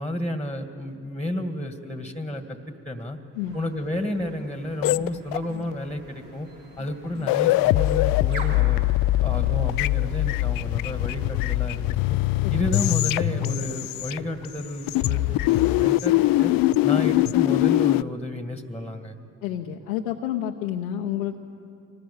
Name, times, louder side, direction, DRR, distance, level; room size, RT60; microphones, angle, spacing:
voice 1, 0.0-2.6 2.9-3.2 3.5-6.5 6.8-8.8 9.2-12.2 12.5-16.5 16.8-19.2, left 1 dB, 5° left, 7 dB, 2.0 m, -31 dB
sound 1, 3.3-16.7, right 2 dB, 70° right, 3.6 m, -46 dB
sound 2, 4.8-5.7 6.8-6.9 7.2-14.5 14.9-18.0, left 17 dB, 60° left, 0.5 m, -22 dB
voice 2, 19.4-21.4, left 11 dB, 90° left, 0 dB, 0.9 m, -29 dB
24.0 x 18.5 x 8.7 m, 2.5 s
hypercardioid pair, 50°, 39 cm